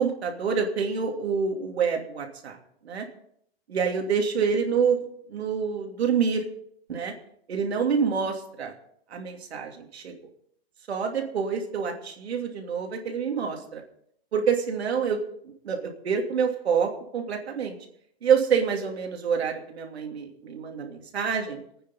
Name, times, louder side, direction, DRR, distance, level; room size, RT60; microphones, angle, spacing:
voice 1, 0.0-2.6 2.8-3.0 3.7-5.0 5.3-6.4 6.9-7.1 7.5-8.7 9.1-10.1 10.9-13.8 14.3-15.2 15.6-17.8 18.2-21.6, right 6 dB, 80° right, 2 dB, 2.9 m, -27 dB
24.0 x 9.3 x 4.2 m, 0.70 s
hypercardioid pair, 135°, 31 cm